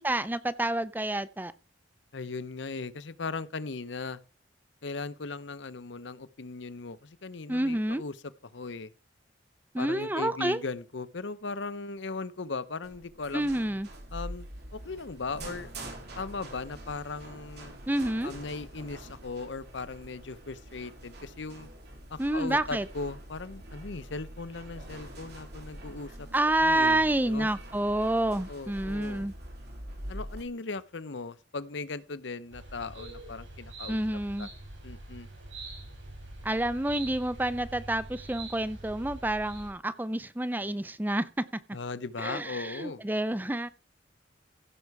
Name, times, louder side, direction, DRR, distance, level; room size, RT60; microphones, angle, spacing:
voice 1, 0.0-1.5 7.5-8.0 9.7-10.6 13.3-13.9 17.9-18.4 22.2-22.8 26.3-29.3 33.9-34.5 36.4-41.3 42.2-43.7, right 1 dB, 10° right, 0.5 m, -28 dB
voice 2, 2.1-4.2 4.8-8.1 8.5-8.9 9.8-13.5 14.1-15.7 16.2-17.8 18.2-21.7 22.1-26.3 26.6-27.5 28.5-29.3 30.1-34.0 34.4-34.5 34.8-35.3 41.7-43.0, left 4 dB, 70° left, 0.8 m, -38 dB
sound 1, 12.8-30.4, right 1 dB, 55° right, 3.2 m, -45 dB
sound 2, 32.5-39.7, right 2 dB, 80° right, 6.9 m, -44 dB
15.5 x 6.7 x 4.8 m
head